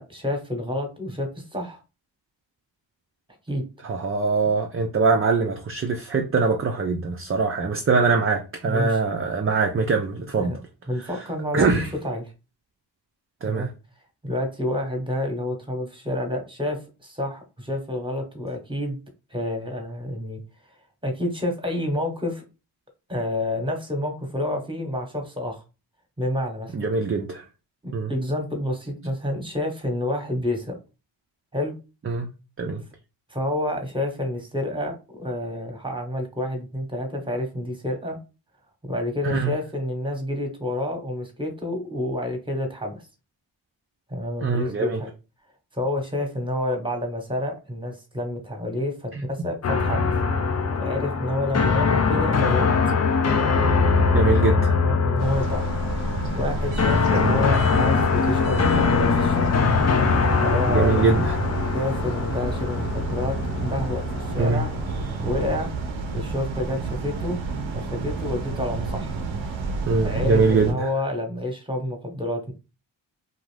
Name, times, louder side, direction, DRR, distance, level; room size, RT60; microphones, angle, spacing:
voice 1, 0.0-1.8 3.5-3.6 8.7-9.0 10.4-10.6 10.9-12.2 13.5-13.7 14.2-19.0 19.3-20.4 21.0-22.4 23.1-25.6 26.2-26.9 27.8-30.8 31.5-31.7 33.3-38.2 38.8-43.0 44.1-45.1 45.7-50.1 50.8-52.7 54.7-55.7 56.3-59.6 60.4-61.0 61.7-64.7 65.2-65.7 66.1-67.4 67.7-69.1 70.0-72.5, left 1 dB, 10° right, 1.1 m, -29 dB
voice 2, 3.8-10.5 11.5-11.9 13.4-13.7 26.7-27.4 27.9-28.1 32.1-32.3 32.6-32.8 39.2-39.5 44.4-45.0 54.1-54.8 57.1-57.4 60.7-61.4 64.4-64.6 69.9-70.9, right 4 dB, 30° right, 0.5 m, -23 dB
sound 1, 49.6-65.6, left 5 dB, 35° left, 0.5 m, -22 dB
sound 2, 55.2-70.7, right 3 dB, 80° right, 0.7 m, -30 dB
2.5 x 2.4 x 3.2 m
cardioid pair, 45°, 47 cm